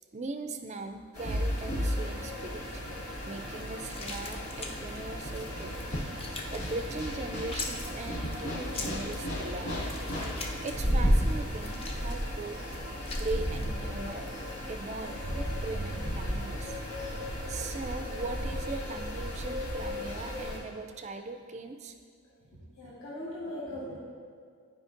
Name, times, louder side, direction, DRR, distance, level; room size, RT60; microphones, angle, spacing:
voice 1, 0.1-2.6 3.2-5.8 6.5-9.9 10.4-12.6 13.2-14.3 14.7-16.8 17.5-21.9, right 3 dB, 30° right, 7 dB, 0.3 m, -39 dB
sound 1, 1.1-20.6, equal, 85° left, 1.6 m, -33 dB
sound 2, 3.1-14.5, left 2 dB, 25° left, 0.5 m, -43 dB
voice 2, 22.6-24.0, left 1 dB, 65° left, -8 dB, 1.6 m, -40 dB
11.5 x 5.1 x 2.5 m, 2.2 s
head